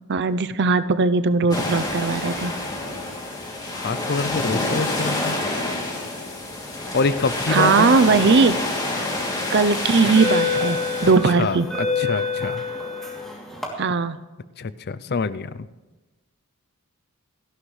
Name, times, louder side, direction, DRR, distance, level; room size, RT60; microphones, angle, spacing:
voice 1, 0.1-2.5 7.5-8.6 9.5-11.7 13.8-14.2, right 4 dB, 55° right, 13 dB, 0.6 m, -19 dB
sound 1, 1.5-11.1, left 2 dB, 20° left, 2.9 m, -27 dB
voice 2, 3.7-5.4 6.9-7.9 11.4-12.6 14.6-15.5, left 4 dB, 45° left, 15 dB, 0.5 m, -25 dB
sound 2, 9.9-13.7, left 4 dB, ahead, 2.9 m, -27 dB
29.0 x 11.5 x 3.3 m, 1.1 s
head